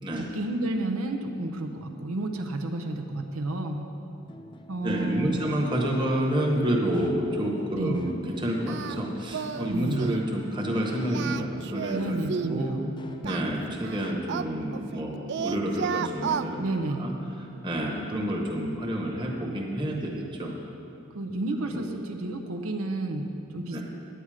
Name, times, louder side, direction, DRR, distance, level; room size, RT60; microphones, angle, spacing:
voice 1, 0.1-3.9 4.7-5.5 7.7-8.0 9.7-10.1 11.9-12.9 16.6-17.1 21.1-23.8, right 2 dB, 90° right, 3 dB, 0.7 m, -31 dB
sound 1, 4.3-14.1, left 1 dB, 20° left, 0.4 m, -44 dB
voice 2, 4.8-12.7 13.2-16.6 17.0-17.1 17.6-20.6 21.6-21.8 23.7-23.8, equal, 20° right, -1 dB, 1.2 m, -29 dB
Singing, 8.7-9.0 9.3-9.7 10.0-10.3 11.0-12.6 13.2-15.0 15.3-16.5, right 7 dB, 55° right, 0.3 m, -32 dB
9.5 x 8.9 x 4.9 m, 2.7 s
head